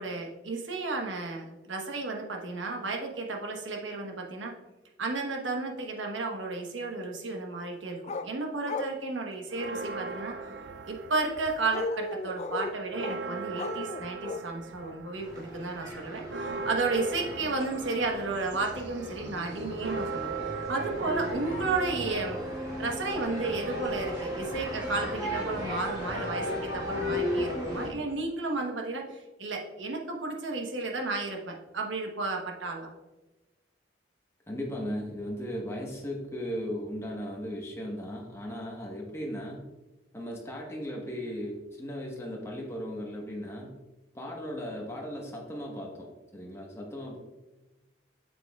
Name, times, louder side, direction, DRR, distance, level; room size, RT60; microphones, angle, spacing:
voice 1, 0.0-4.5 5.0-10.3 10.9-22.4 22.8-29.0 29.4-32.9, right 3 dB, 90° right, 1 dB, 1.1 m, -33 dB
sound 1, 8.1-8.3 8.6-9.0 11.7-13.2 13.5-14.4 14.8-15.0, left 3 dB, 35° left, 0.3 m, -35 dB
sound 2, 9.5-11.9 12.2-22.7, right 4 dB, 70° right, 0.4 m, -39 dB
sound 3, 15.2-27.9, left 1 dB, 20° right, 2.3 m, -35 dB
voice 2, 34.5-39.7 40.1-43.8 44.1-47.2, equal, 15° left, -1 dB, 1.2 m, -37 dB
7.9 x 6.9 x 2.3 m, 1.1 s
head